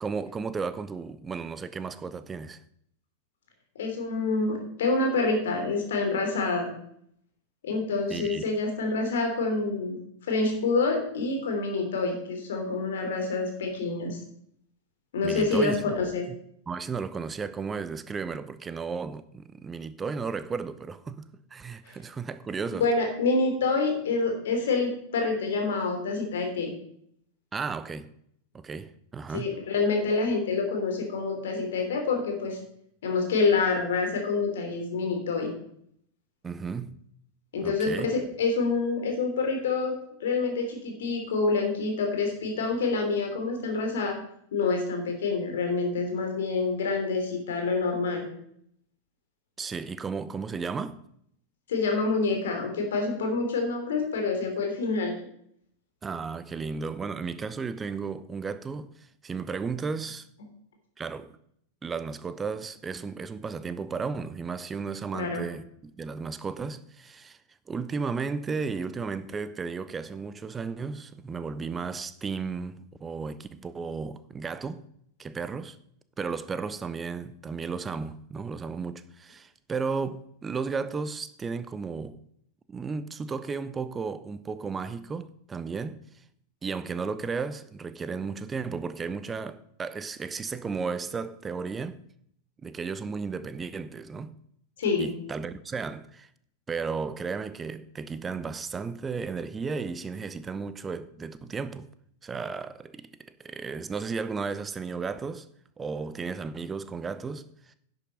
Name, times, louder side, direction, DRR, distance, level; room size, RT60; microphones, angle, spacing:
voice 1, 0.0-2.6 8.1-8.5 15.2-15.9 16.7-22.9 27.5-28.1 28.5-29.5 36.4-37.0 37.6-38.1 49.6-51.0 56.0-58.9 59.2-60.3 61.0-61.4 61.8-67.4 67.7-74.8 75.2-75.8 76.2-82.2 82.7-86.0 86.6-92.0 92.6-94.3 95.0-96.3 96.7-101.9 102.2-103.1 103.4-105.5 105.8-107.7, right 5 dB, 15° right, 0.8 m, -34 dB
voice 2, 3.7-6.7 7.6-14.2 15.1-16.3 22.8-26.7 29.3-32.6 33.0-35.5 37.5-39.9 40.2-44.2 44.5-48.2 51.7-55.2 65.1-65.4 94.8-95.1, left 3 dB, 60° left, 3.2 m, -27 dB
10.5 x 7.9 x 5.4 m
figure-of-eight pair, 90°, 0 cm